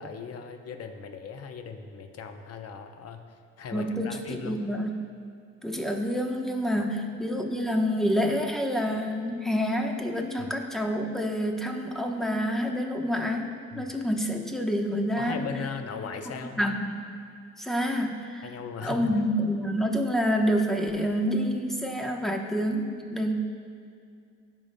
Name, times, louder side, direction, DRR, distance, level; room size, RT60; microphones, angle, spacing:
voice 1, 0.0-3.2 3.6-4.6 10.4-10.5 13.7-13.9 15.2-16.6 18.4-19.1, left 6 dB, 55° left, 6 dB, 0.8 m, -38 dB
voice 2, 3.7-4.9 5.6-15.5 16.6-17.0 17.6-18.5 18.8-23.3, equal, ahead, 2 dB, 0.9 m, -28 dB
14.5 x 5.5 x 2.2 m, 2.3 s
cardioid pair, 90°, 30 cm